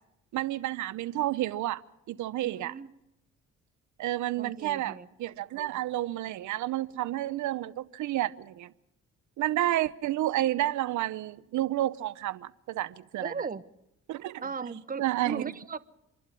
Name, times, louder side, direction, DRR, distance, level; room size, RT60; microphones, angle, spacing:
voice 1, 0.3-1.8 2.1-2.7 4.0-8.7 9.4-13.3 14.1-14.4 15.0-15.4, right 14 dB, 75° right, 0.8 m, -30 dB
voice 2, 2.4-2.9 4.4-5.1 13.2-13.6 14.4-15.8, right 5 dB, 30° right, 1.1 m, -37 dB
26.0 x 11.5 x 9.9 m
cardioid pair, 90°, 30 cm